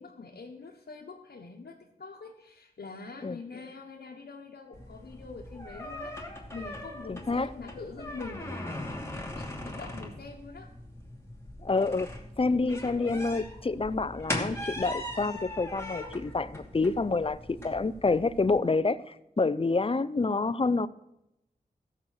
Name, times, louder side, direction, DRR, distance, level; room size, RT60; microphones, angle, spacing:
voice 1, 0.0-6.1 6.5-8.9 9.3-10.7, left 4 dB, 90° left, -2 dB, 1.2 m, -44 dB
sound 1, 4.7-18.6, left 1 dB, 15° left, 2.7 m, -40 dB
voice 2, 7.1-7.5 11.6-20.9, left 3 dB, 35° left, 15 dB, 0.6 m, -28 dB
15.5 x 7.1 x 6.7 m, 0.87 s
wide cardioid pair, 60°, 17 cm